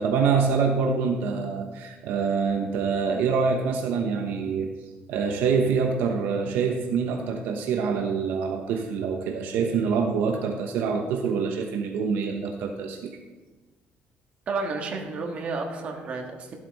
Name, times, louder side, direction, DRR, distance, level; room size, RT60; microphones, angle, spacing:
voice 1, 0.0-13.2, right 5 dB, 70° right, 3 dB, 0.9 m, -26 dB
voice 2, 14.5-16.5, right 3 dB, 40° right, 1 dB, 1.6 m, -31 dB
13.0 x 8.2 x 4.1 m, 1.3 s
cardioid pair, 175°, 3 cm